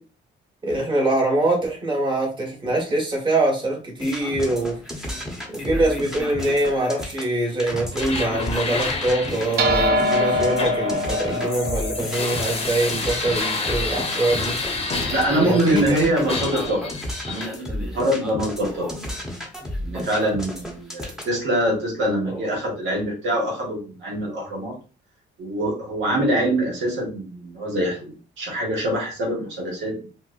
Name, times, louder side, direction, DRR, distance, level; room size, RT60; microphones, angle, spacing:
voice 1, 0.6-5.1 5.5-14.6 15.3-16.1 16.5-16.6 22.2-22.4, right 2 dB, 25° right, -2 dB, 1.5 m, -24 dB
sound 1, 4.0-21.4, left 1 dB, 5° right, 1.0 m, -33 dB
sound 2, 7.9-15.9 16.3-17.5, left 3 dB, 30° left, 0.9 m, -30 dB
sound 3, 9.6-14.2, left 1 dB, 55° right, 0.6 m, -24 dB
voice 2, 15.1-16.9 17.3-18.9 19.8-24.7 25.4-30.0, right 1 dB, 70° right, -2 dB, 1.4 m, -24 dB
4.5 x 2.2 x 2.5 m, 0.35 s
cardioid pair, 90°, 20 cm